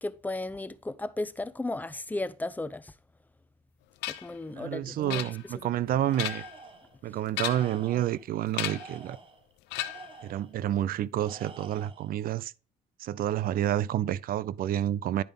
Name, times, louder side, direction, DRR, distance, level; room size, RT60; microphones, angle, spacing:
voice 1, 0.0-2.9 4.0-5.7, left 2 dB, 10° left, 0.7 m, -35 dB
sound 1, 4.0-4.4 5.1-5.7 6.0-6.6 7.3-7.8 8.5-9.0 9.7-10.2, left 15 dB, 90° left, 0.8 m, -35 dB
voice 2, 4.6-6.4 7.0-9.2 10.2-12.5 13.0-15.2, right 12 dB, 60° right, 0.5 m, -29 dB
Tools, 6.1-7.0 7.4-8.2 8.6-10.5 11.2-12.1, right 4 dB, 30° right, 1.3 m, -48 dB
10.5 x 5.2 x 3.5 m
cardioid pair, 110°, 17 cm